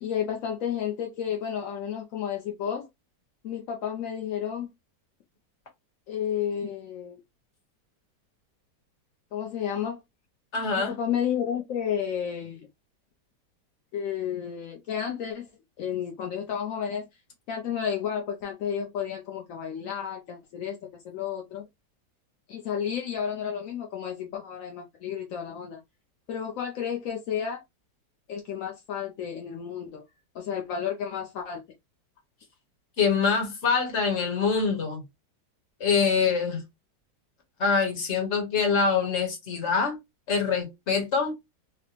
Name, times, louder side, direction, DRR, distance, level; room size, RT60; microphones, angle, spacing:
voice 1, 0.0-2.9 3.4-4.7 6.1-7.2 9.3-10.0 10.8-12.7 13.9-15.5 15.8-17.1 17.5-20.8 21.0-21.7 22.5-25.8 26.3-27.6 28.3-30.0 30.3-31.6, left 8 dB, 65° left, 0.8 m, -31 dB
voice 2, 10.5-10.9 33.0-35.0 35.8-36.6 37.6-40.0 40.3-41.3, left 5 dB, 45° left, 1.3 m, -25 dB
4.0 x 2.1 x 2.9 m
omnidirectional pair, 1.9 m